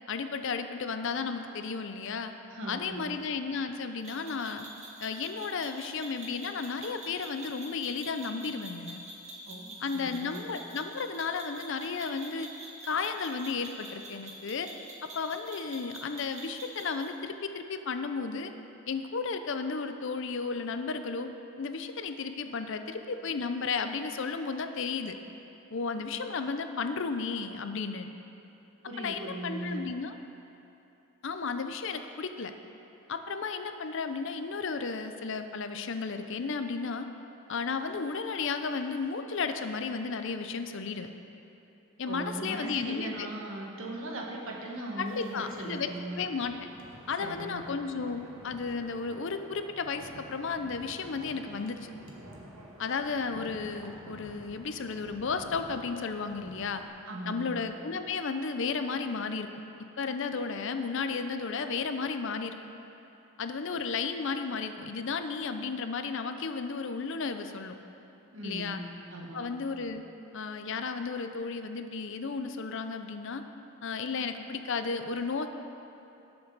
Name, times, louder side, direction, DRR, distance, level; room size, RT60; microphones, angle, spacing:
voice 1, 0.1-2.3 2.7-4.7 5.0-9.0 9.8-12.5 12.8-14.7 15.2-18.5 18.9-21.3 21.6-25.2 25.7-28.1 29.0-30.2 31.2-32.5 33.1-37.1 37.5-41.1 42.0-43.3 45.0-46.5 47.1-51.9 52.8-56.8 57.3-59.5 60.0-62.6 63.4-67.8 68.4-68.8 69.3-70.0 70.3-73.4 73.8-75.5, left 4 dB, 60° left, 8 dB, 0.6 m, -33 dB
voice 2, 2.5-3.1 9.5-10.4 28.8-29.8 42.0-46.1 47.2-47.7 57.1-57.6 68.3-68.8 69.1-69.5, right 1 dB, 60° right, -2 dB, 1.5 m, -39 dB
sound 1, 4.0-17.1, right 1 dB, 30° right, 1.4 m, -46 dB
Wind, 45.0-56.9, right 1 dB, 80° right, 1.5 m, -50 dB
18.0 x 6.9 x 4.0 m, 2.9 s
head